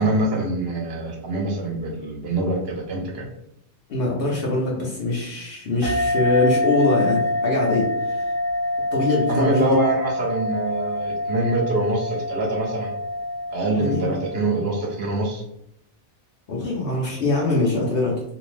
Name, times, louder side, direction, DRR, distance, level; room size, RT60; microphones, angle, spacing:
voice 1, 0.0-3.3 9.3-12.9 13.5-15.4, right 2 dB, 65° right, 1 dB, 0.9 m, -24 dB
voice 2, 3.9-8.2 8.9-9.7 13.7-14.1 16.5-18.2, left 2 dB, 60° left, -3 dB, 0.8 m, -23 dB
sound 1, 5.8-14.9, left 1 dB, 25° right, 0.7 m, -26 dB
2.5 x 2.0 x 3.1 m, 0.76 s
omnidirectional pair, 1.1 m